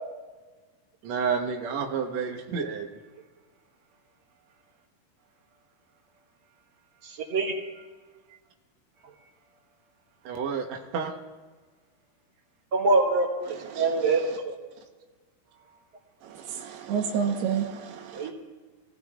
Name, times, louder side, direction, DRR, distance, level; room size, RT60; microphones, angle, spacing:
voice 1, 1.0-2.9 10.2-11.1, right 6 dB, 70° right, 1 dB, 1.7 m, -30 dB
voice 2, 7.0-7.5 12.7-14.5 18.1-18.3, right 3 dB, 35° right, -2 dB, 3.4 m, -25 dB
voice 3, 16.2-18.3, right 7 dB, 85° right, 3 dB, 3.1 m, -30 dB
24.5 x 18.0 x 2.4 m, 1.3 s
omnidirectional pair, 4.6 m